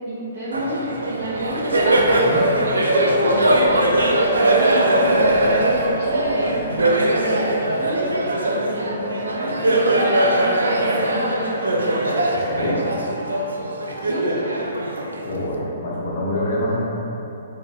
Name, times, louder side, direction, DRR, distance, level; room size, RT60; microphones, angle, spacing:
voice 1, 0.1-0.8 1.0-2.8 3.2-8.0 8.4-11.8 14.0-14.5, equal, 65° right, -10 dB, 0.8 m, -29 dB
Laughter, 0.5-15.5, right 1 dB, 90° right, 0.4 m, -20 dB
voice 2, 12.3-12.9 15.1-16.8, left 1 dB, 60° left, -5 dB, 0.9 m, -25 dB
2.8 x 2.2 x 4.0 m, 3.0 s
hypercardioid pair, 135°, 0 cm